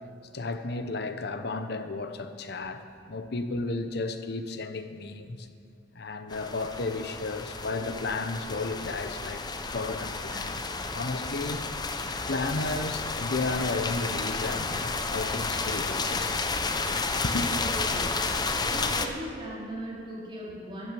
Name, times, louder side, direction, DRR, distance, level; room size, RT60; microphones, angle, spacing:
voice 1, 0.3-5.5 5.9-9.4 9.7-10.6 10.9-11.6 12.3-16.3 17.2-17.5, left 3 dB, 60° left, 0.9 m, -33 dB
sound 1, 6.3-19.1, left 3 dB, 20° left, 0.7 m, -31 dB
Gull seagull, 6.3-18.9, right 1 dB, 85° right, 2.4 m, -53 dB
voice 2, 17.6-18.1 18.5-20.9, right 1 dB, 25° right, 3.8 m, -38 dB
14.0 x 9.2 x 7.0 m
head